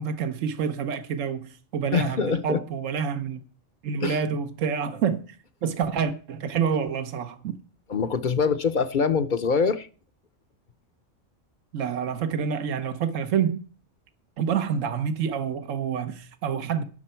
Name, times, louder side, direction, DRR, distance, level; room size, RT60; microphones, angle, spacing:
voice 1, 0.0-3.4 3.8-5.2 5.6-7.5 11.7-13.6 14.4-16.8, right 7 dB, 75° right, 1.3 m, -27 dB
voice 2, 1.9-2.6 4.0-4.2 7.9-9.9, left 5 dB, 45° left, 0.7 m, -24 dB
18.5 x 6.6 x 4.4 m
omnidirectional pair, 1.3 m